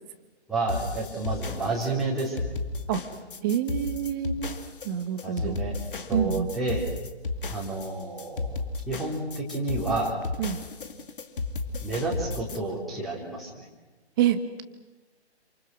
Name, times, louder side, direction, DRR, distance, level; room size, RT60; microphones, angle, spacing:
voice 1, 0.5-2.5 5.2-5.7 6.1-6.9 7.5-8.6 8.9-10.1 11.8-13.7, right 3 dB, ahead, -7 dB, 4.1 m, -30 dB
sound 1, 0.7-12.6, left 3 dB, 50° left, 2.4 m, -34 dB
voice 2, 3.4-4.5 4.8-5.6 6.1-6.5 10.4-10.6 14.2-14.6, right 9 dB, 20° right, 11 dB, 1.3 m, -27 dB
28.0 x 26.5 x 6.3 m, 1.2 s
figure-of-eight pair, 140°, 34 cm